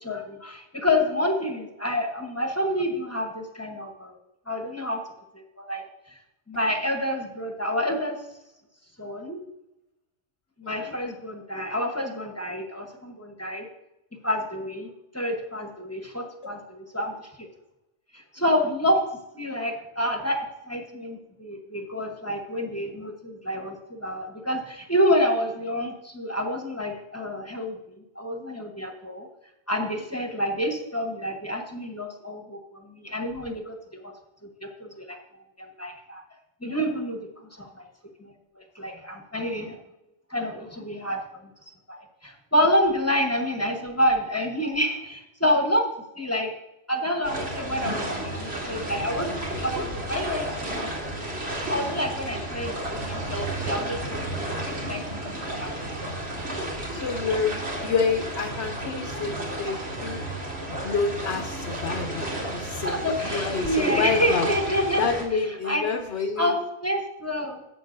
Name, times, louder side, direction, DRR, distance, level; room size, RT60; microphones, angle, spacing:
voice 1, 0.0-4.2 4.5-5.0 5.3-5.8 6.5-8.2 9.0-9.4 10.6-13.7 14.2-17.5 18.1-19.0 19.3-29.3 29.7-34.1 34.6-35.2 35.6-36.2 36.6-37.2 37.6-37.7 38.2-39.8 40.3-41.2 41.9-45.9 46.1-46.5 46.9-51.1 51.7-54.2 54.6-55.3 55.6-56.0 62.8-65.0 65.6-65.8 66.4-67.6, equal, 15° left, 3 dB, 1.0 m, -28 dB
voice 2, 10.6-11.0 56.9-60.2 60.7-64.5 65.0-66.5, left 5 dB, 75° left, 4 dB, 1.0 m, -28 dB
sound 1, 47.2-65.2, right 1 dB, 65° right, 2.1 m, -32 dB
12.5 x 7.6 x 2.6 m, 0.89 s
omnidirectional pair, 1.2 m